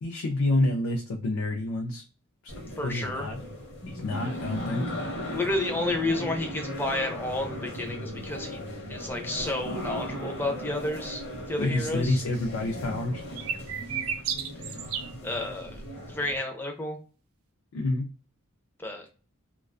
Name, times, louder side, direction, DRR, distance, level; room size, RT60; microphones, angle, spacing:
voice 1, 0.0-2.0 2.8-3.4 3.9-4.9 11.6-13.2 17.7-18.1, left 2 dB, 85° left, 2 dB, 0.4 m, -28 dB
sound 1, 2.5-16.4, equal, 55° left, 0.7 m, -37 dB
voice 2, 2.8-3.3 4.2-4.4 4.8-4.9 5.3-11.2 11.5-12.2 15.2-15.8 16.1-17.0 18.8-19.1, left 2 dB, 10° left, 3 dB, 0.4 m, -31 dB
sound 2, 13.4-15.1, right 7 dB, 85° right, 0.4 m, -32 dB
2.3 x 2.2 x 2.3 m, 0.37 s
head